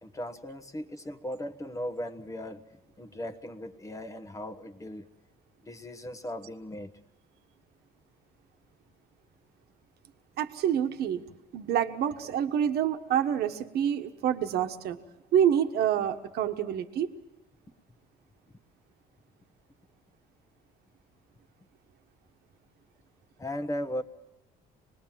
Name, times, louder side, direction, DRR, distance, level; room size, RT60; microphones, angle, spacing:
voice 1, 0.0-2.7 3.0-5.1 5.6-6.9 23.4-24.0, left 1 dB, 20° left, 8 dB, 1.3 m, -37 dB
voice 2, 10.4-11.2 11.5-15.0 15.3-17.1, right 9 dB, 70° right, 7 dB, 1.4 m, -27 dB
26.0 x 20.5 x 7.6 m, 0.95 s
cardioid pair, 110°, 17 cm